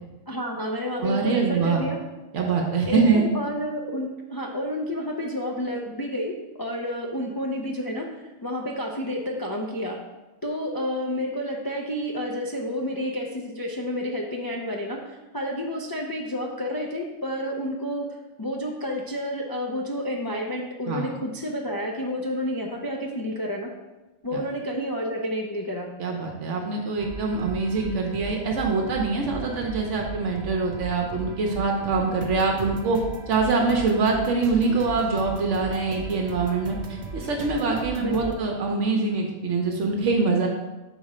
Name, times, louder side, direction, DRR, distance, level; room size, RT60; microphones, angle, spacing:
voice 1, 0.3-2.0 2.9-6.3 6.6-10.0 10.4-18.1 18.4-23.7 24.2-25.9 38.0-38.3, equal, 30° left, -1 dB, 0.4 m, -30 dB
voice 2, 1.0-1.9 2.3-3.2 20.9-21.1 24.3-24.4 26.0-33.0 33.3-40.5, right 4 dB, 75° right, 1 dB, 1.1 m, -24 dB
sound 1, 27.0-38.3, right 3 dB, 45° right, 0.7 m, -38 dB
5.9 x 4.2 x 4.9 m, 1.1 s
omnidirectional pair, 1.3 m